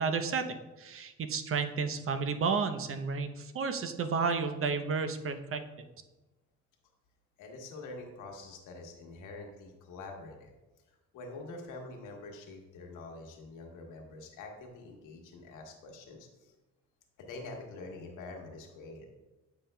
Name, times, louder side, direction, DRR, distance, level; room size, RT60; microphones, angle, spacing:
voice 1, 0.0-5.6, right 5 dB, 45° right, 8 dB, 0.6 m, -32 dB
voice 2, 7.4-10.5 11.1-16.5 17.2-19.1, left 3 dB, 90° left, 1 dB, 1.2 m, -46 dB
8.9 x 5.4 x 2.2 m, 1.1 s
cardioid pair, 90°, 30 cm